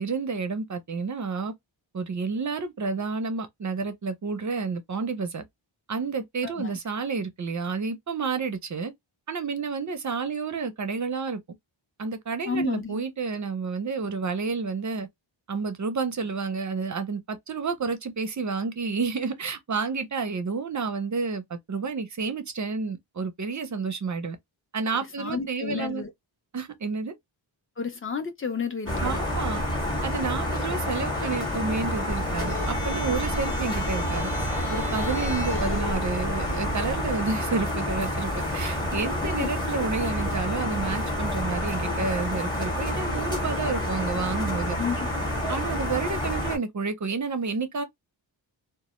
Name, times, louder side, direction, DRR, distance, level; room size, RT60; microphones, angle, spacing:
voice 1, 0.0-1.5 1.9-5.4 5.9-8.9 9.3-11.4 12.0-15.1 15.5-24.4 24.7-26.0 26.5-27.1 29.0-29.6 30.0-34.3 34.7-44.8 45.5-47.8, right 4 dB, 40° right, 0.5 m, -30 dB
voice 2, 12.5-13.0 25.2-26.1 27.8-29.3 39.2-39.5 44.7-45.3, left 5 dB, 30° left, 0.5 m, -31 dB
sound 1, 28.9-46.6, left 1 dB, 10° left, 0.8 m, -29 dB
sound 2, 32.1-37.1, right 1 dB, 60° left, 0.9 m, -33 dB
2.1 x 2.0 x 2.9 m
wide cardioid pair, 115°, 47 cm